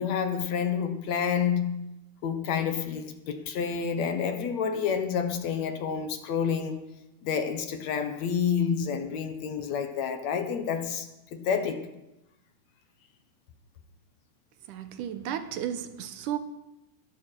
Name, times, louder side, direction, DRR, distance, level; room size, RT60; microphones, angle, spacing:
voice 1, 0.0-1.9 2.2-6.8 7.2-11.9, left 7 dB, 65° left, 7 dB, 2.3 m, -29 dB
voice 2, 14.7-16.4, right 10 dB, 85° right, 10 dB, 2.5 m, -33 dB
21.0 x 12.0 x 4.6 m, 0.93 s
omnidirectional pair, 3.6 m